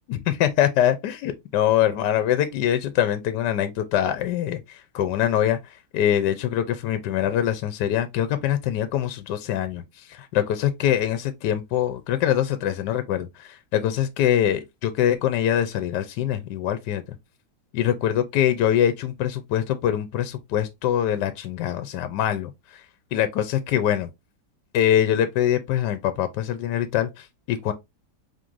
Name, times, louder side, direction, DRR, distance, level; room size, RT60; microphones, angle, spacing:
voice 1, 0.1-5.6 5.9-9.8 10.1-17.0 17.7-22.5 23.1-24.1 24.7-27.7, left 10 dB, 75° left, 1.1 m, -23 dB
5.2 x 3.0 x 2.6 m
omnidirectional pair, 2.1 m